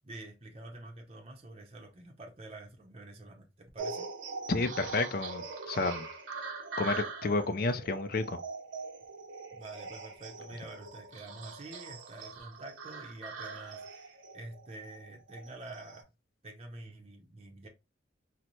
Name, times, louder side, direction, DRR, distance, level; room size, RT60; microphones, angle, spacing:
voice 1, 0.0-4.1 9.5-16.0 16.4-17.7, right 2 dB, 30° right, 0.6 m, -47 dB
sound 1, 3.8-16.0, right 4 dB, 90° right, 0.7 m, -42 dB
voice 2, 4.5-6.0 6.8-8.4, left 3 dB, 50° left, 0.4 m, -31 dB
4.0 x 2.1 x 2.9 m
head